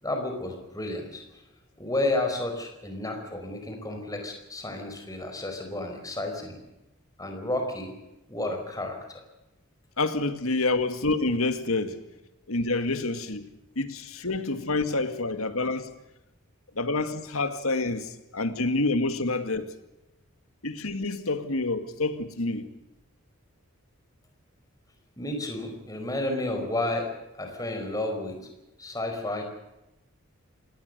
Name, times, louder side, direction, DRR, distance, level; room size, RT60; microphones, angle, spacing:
voice 1, 0.0-1.2 1.8-6.6 7.2-7.9 8.3-9.0 25.2-27.1 27.4-28.4 28.8-29.4, left 2 dB, 15° left, 4.9 m, -31 dB
voice 2, 10.0-12.0 12.5-13.5 13.8-15.9 16.8-19.7 20.6-22.7, left 2 dB, 80° left, 2.1 m, -28 dB
27.0 x 19.0 x 6.7 m
head